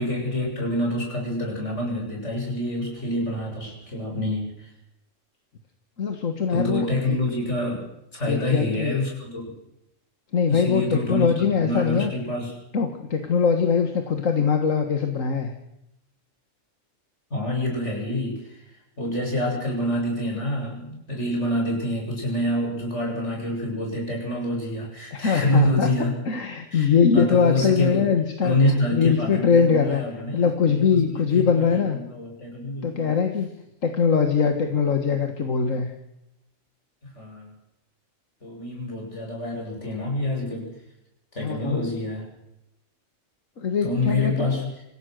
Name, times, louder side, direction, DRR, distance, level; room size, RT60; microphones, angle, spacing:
voice 1, 0.0-4.7 6.5-7.9 8.1-9.5 10.5-12.5 17.3-18.6 19.0-26.1 26.7-26.9 27.1-28.1 28.4-33.1 37.0-37.5 38.4-40.7 41.3-42.3 43.8-44.7, left 1 dB, 65° left, -1 dB, 7.9 m, -27 dB
voice 2, 6.0-7.2 8.3-9.0 10.3-12.1 12.7-15.5 25.1-25.9 26.3-28.6 28.9-30.0 30.3-32.0 32.8-33.5 33.8-35.9 41.4-41.9 43.6-44.6, left 6 dB, 85° left, 5 dB, 2.0 m, -22 dB
26.5 x 16.0 x 6.6 m, 0.86 s
omnidirectional pair, 1.3 m